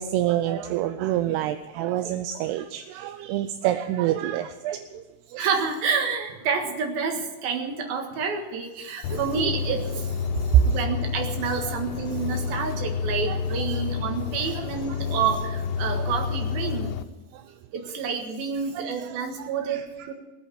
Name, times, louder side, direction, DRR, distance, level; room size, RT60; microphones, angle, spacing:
voice 1, 0.0-5.0 9.1-9.5 11.7-11.8 13.3-13.4 14.6-14.7 15.9-16.1 18.8-18.9 19.4-19.8, right 12 dB, 80° right, 8 dB, 2.5 m, -28 dB
voice 2, 5.4-16.9 17.7-20.1, right 6 dB, 65° right, 3 dB, 3.3 m, -29 dB
sound 1, 9.0-17.0, left 6 dB, 85° left, 2.9 m, -29 dB
19.5 x 8.1 x 9.2 m, 1.2 s
omnidirectional pair, 5.0 m